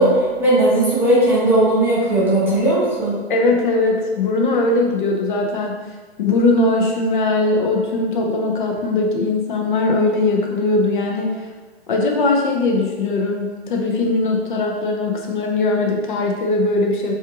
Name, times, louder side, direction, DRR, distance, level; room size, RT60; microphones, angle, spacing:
voice 1, 0.0-3.2, right 1 dB, 5° right, -9 dB, 0.7 m, -17 dB
voice 2, 3.3-5.8 6.2-11.5 11.9-17.1, left 2 dB, 50° left, 1 dB, 0.7 m, -20 dB
7.1 x 2.6 x 2.9 m, 1.4 s
hypercardioid pair, 150°, 32 cm